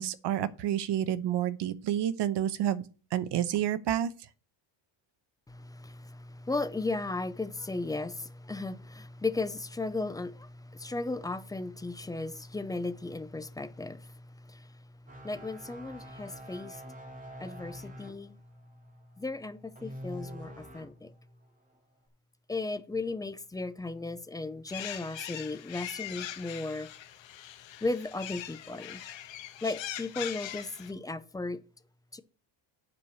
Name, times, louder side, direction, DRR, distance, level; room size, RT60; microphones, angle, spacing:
voice 1, 0.0-4.1, right 11 dB, 60° right, 0.9 m, -29 dB
voice 2, 5.5-14.8 15.2-16.8 17.4-18.4 19.2-21.1 22.5-26.9 27.8-29.0 29.6-31.6 32.1-32.2, left 3 dB, 10° left, 0.3 m, -36 dB
sound 1, 15.1-21.1 21.4-21.7, equal, 15° right, 2.3 m, -46 dB
sound 2, 24.7-30.9, left 12 dB, 70° left, 1.4 m, -41 dB
8.4 x 4.8 x 7.0 m
cardioid pair, 150°, 46 cm